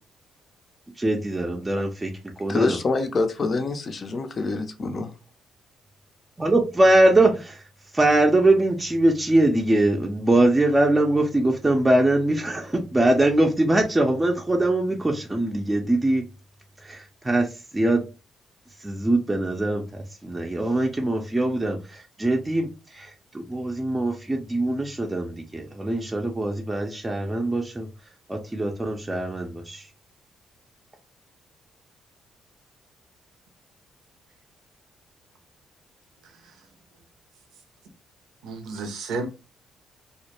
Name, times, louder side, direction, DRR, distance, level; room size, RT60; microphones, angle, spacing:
voice 1, 1.0-2.1 2.4-2.8 6.4-7.6 7.9-16.2 16.8-17.5 17.7-18.0 18.8-27.9 28.3-29.8, right 1 dB, 20° right, 0.4 m, -22 dB
voice 2, 2.5-5.1, left 3 dB, 45° left, 0.5 m, -26 dB
voice 3, 36.2-36.6 38.4-39.3, right 3 dB, 80° right, 0.5 m, -32 dB
2.1 x 2.0 x 2.9 m
supercardioid pair, 60°, 0 cm